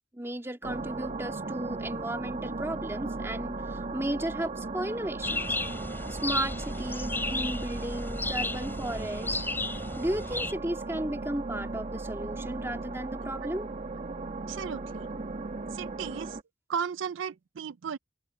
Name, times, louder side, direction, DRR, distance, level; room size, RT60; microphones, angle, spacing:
voice 1, 0.1-5.6 6.1-9.4 10.0-13.7, right 1 dB, 15° right, 2.0 m, -34 dB
sound 1, 0.6-16.4, right 3 dB, 35° right, 1.2 m, -36 dB
sound 2, 5.2-10.5, left 2 dB, 10° left, 3.2 m, -34 dB
voice 2, 14.5-15.1 15.7-16.4 16.7-18.0, right 7 dB, 70° right, 0.4 m, -35 dB
head